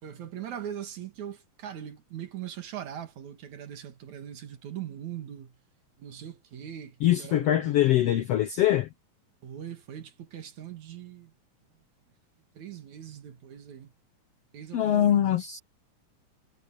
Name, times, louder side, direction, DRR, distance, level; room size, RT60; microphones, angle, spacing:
voice 1, 0.0-5.5 6.0-8.2 9.4-11.3 12.5-13.9 14.5-15.4, right 10 dB, 60° right, 3.1 m, -41 dB
voice 2, 7.0-8.9 14.7-15.6, left 12 dB, 70° left, 1.5 m, -23 dB
omnidirectional pair, 3.8 m